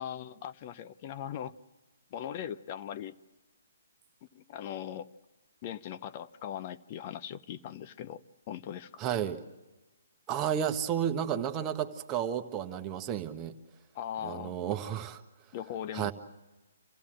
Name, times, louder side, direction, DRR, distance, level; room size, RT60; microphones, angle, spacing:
voice 1, 0.0-1.6 2.1-3.1 4.3-5.1 5.6-8.2 8.5-8.9 13.9-14.6 15.5-16.1, left 10 dB, 35° left, 13 dB, 0.8 m, -39 dB
voice 2, 9.0-9.4 10.3-13.5 14.2-15.2 15.9-16.1, right 9 dB, 20° right, 6 dB, 1.3 m, -32 dB
26.5 x 16.0 x 7.6 m, 1.1 s
figure-of-eight pair, 135°, 0 cm